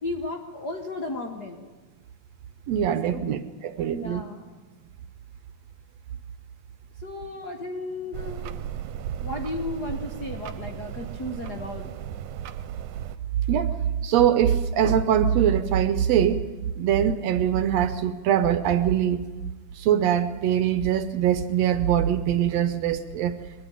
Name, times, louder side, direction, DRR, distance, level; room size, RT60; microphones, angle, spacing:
voice 1, 0.0-1.6 3.1-3.4 3.8-4.5 7.0-8.5 9.2-11.9, left 2 dB, 50° left, 3 dB, 1.2 m, -34 dB
voice 2, 2.7-4.2 13.5-13.7 14.0-16.4 16.8-19.3 19.8-23.3, right 9 dB, 70° right, 11 dB, 1.7 m, -22 dB
sound 1, 8.1-13.2, right 10 dB, 90° right, 2.3 m, -36 dB
21.5 x 13.0 x 9.8 m, 1.3 s
omnidirectional pair, 3.4 m